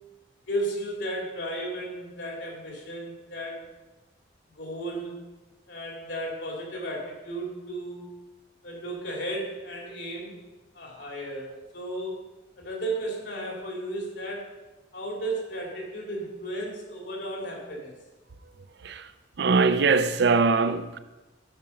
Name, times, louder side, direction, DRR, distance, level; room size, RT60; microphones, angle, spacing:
voice 1, 0.5-3.6 4.6-5.2 5.7-8.1 8.6-10.3 10.7-12.2 12.6-14.5 14.9-17.9, right 1 dB, 65° left, 2.9 m, -34 dB
voice 2, 18.8-19.1 19.4-21.0, right 4 dB, 60° right, 0.5 m, -22 dB
11.0 x 5.4 x 5.6 m
head